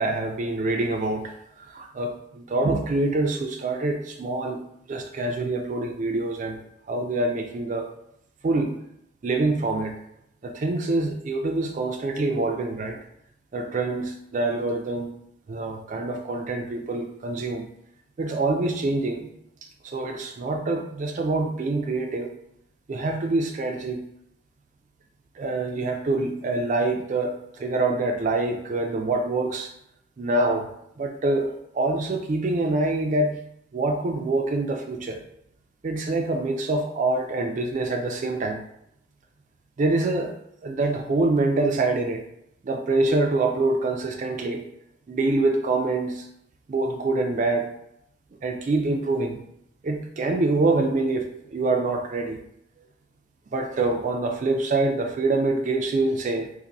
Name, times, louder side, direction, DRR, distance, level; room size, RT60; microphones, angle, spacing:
voice 1, 0.0-1.3 1.7-4.6 4.9-6.6 6.9-7.9 8.4-8.7 9.2-9.9 10.4-13.0 13.5-15.1 15.5-17.6 18.2-19.3 19.8-22.3 22.9-24.0 25.4-29.7 30.2-30.7 31.0-33.4 33.7-35.2 35.8-38.6 39.8-40.3 40.6-42.2 42.6-44.6 45.1-46.2 46.7-47.7 48.4-49.4 49.8-52.4 53.5-56.5, right 2 dB, 40° right, 4 dB, 0.3 m, -25 dB
2.6 x 2.5 x 4.0 m, 0.76 s
head